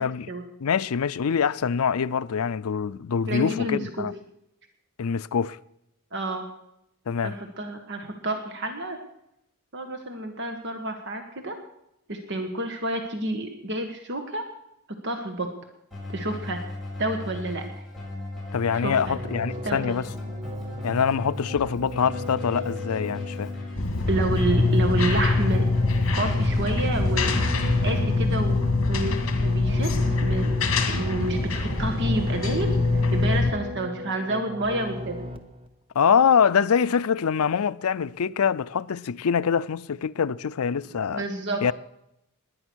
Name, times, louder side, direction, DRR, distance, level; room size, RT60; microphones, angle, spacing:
voice 1, 0.0-0.3 0.6-4.1 5.0-5.6 7.1-7.3 18.5-20.1 20.8-23.5 36.0-41.2 41.6-41.7, left 6 dB, 85° left, 0.5 m, -24 dB
voice 2, 3.3-4.1 6.1-6.5 7.2-9.0 9.7-11.5 12.1-14.4 15.0-15.5 16.1-16.7 17.0-17.8 18.8-19.2 19.6-20.0 24.1-25.6 26.1-27.4 27.8-28.6 28.9-30.6 30.9-35.2 41.1-41.6, right 1 dB, 55° right, 1.5 m, -29 dB
Keyboard (musical), 15.9-28.0, left 2 dB, ahead, 6.9 m, -37 dB
sound 1, 19.0-35.7, left 1 dB, 25° right, 1.2 m, -38 dB
sound 2, 23.8-33.5, left 3 dB, 60° left, 2.1 m, -23 dB
20.0 x 10.0 x 6.3 m
head